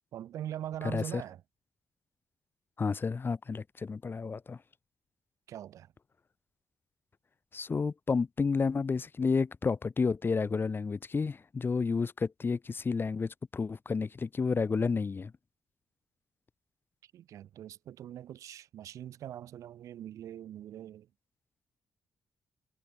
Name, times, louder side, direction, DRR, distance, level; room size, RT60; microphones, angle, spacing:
voice 1, 0.1-1.4 5.5-5.9 17.1-21.1, right 11 dB, 75° right, 6.3 m, -42 dB
voice 2, 0.8-1.2 2.8-4.6 7.5-15.3, left 4 dB, 40° left, 1.1 m, -31 dB
supercardioid pair, 45°, 5 cm